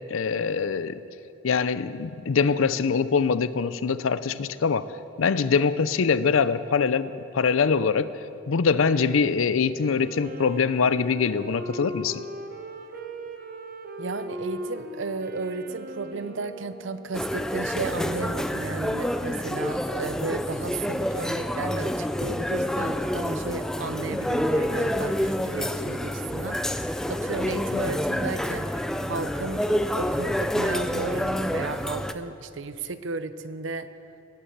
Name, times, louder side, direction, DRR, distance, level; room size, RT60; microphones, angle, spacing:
voice 1, 0.1-1.0 1.4-8.1 8.5-12.2, left 5 dB, 80° left, 15 dB, 0.5 m, -23 dB
Wind instrument woodwind instrument, 9.8-17.5, right 1 dB, 45° right, 1.0 m, -39 dB
voice 2, 14.0-26.8 27.1-33.9, right 3 dB, 65° right, 12 dB, 0.6 m, -34 dB
sound 1, 17.1-32.1, equal, 5° left, 0.3 m, -28 dB
18.5 x 8.5 x 7.3 m, 3.0 s
head